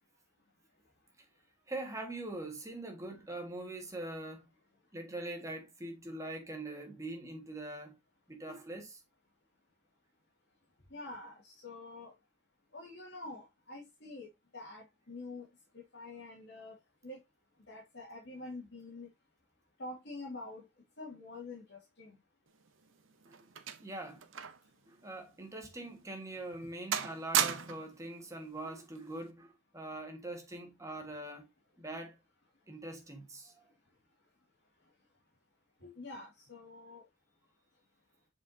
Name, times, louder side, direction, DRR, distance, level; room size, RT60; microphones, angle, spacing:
voice 1, 1.7-4.4 4.9-7.9 8.3-9.0 23.3-23.4 23.8-24.3 24.9-31.5 31.8-32.2 32.7-33.5, right 2 dB, 15° right, 1.6 m, -43 dB
voice 2, 10.9-12.1 12.7-14.3 14.5-15.5 15.9-16.8 17.0-17.2 17.7-19.1 19.8-20.6 21.0-22.1 35.8-37.0, left 2 dB, 60° left, 2.2 m, -46 dB
sound 1, 22.6-24.7 25.0-25.2 25.8-26.0 26.4-26.7 26.9-28.0 29.0-29.2, right 8 dB, 75° right, 0.8 m, -35 dB
7.4 x 4.7 x 2.7 m
head